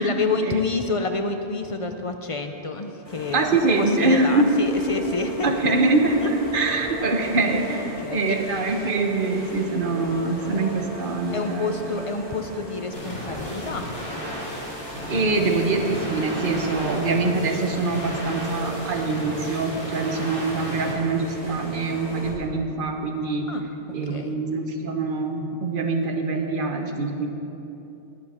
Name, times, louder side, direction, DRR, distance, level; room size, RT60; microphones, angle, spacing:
voice 1, 0.0-3.4 3.8-5.8 6.2-6.3 7.8-8.2 11.3-13.9 15.1-15.5 23.5-23.6 23.9-24.3, left 3 dB, 50° left, 6 dB, 0.4 m, -28 dB
sound 1, 3.0-22.3, equal, 25° left, 3.1 m, -36 dB
voice 2, 3.3-4.6 5.4-7.8 8.1-11.7 15.1-23.5 23.9-27.3, right 3 dB, 45° right, 4 dB, 1.1 m, -24 dB
sound 2, 12.9-20.9, equal, 70° left, 2.6 m, -35 dB
19.0 x 6.8 x 4.3 m, 2.9 s
omnidirectional pair, 1.3 m